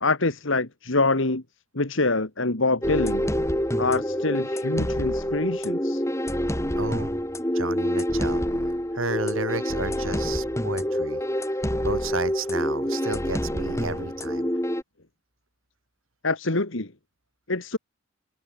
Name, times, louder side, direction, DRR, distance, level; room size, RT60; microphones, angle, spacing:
voice 1, 0.0-1.4 1.7-3.3 3.8-6.0 16.2-16.9 17.5-17.8, left 3 dB, 65° left, 1.9 m, -25 dB
sound 1, 2.8-14.8, equal, 15° left, 6.1 m, -27 dB
voice 2, 6.8-7.1 7.5-8.4 8.9-11.2 11.8-14.5, right 3 dB, 75° right, 5.2 m, -32 dB
head